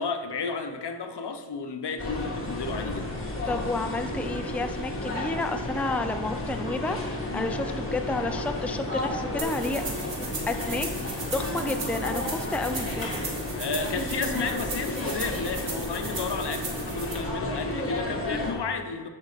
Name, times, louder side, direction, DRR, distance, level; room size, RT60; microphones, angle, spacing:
voice 1, 0.0-3.1 7.3-7.5 13.5-19.1, left 4 dB, 65° left, 6 dB, 0.9 m, -32 dB
sound 1, 2.0-18.5, left 1 dB, 30° left, 2.3 m, -32 dB
voice 2, 3.5-9.8 10.5-13.1, left 2 dB, 5° left, 6 dB, 0.5 m, -31 dB
sound 2, 9.4-17.1, right 3 dB, 80° right, 2.2 m, -37 dB
13.0 x 6.0 x 4.1 m, 1.4 s
wide cardioid pair, 95°, 44 cm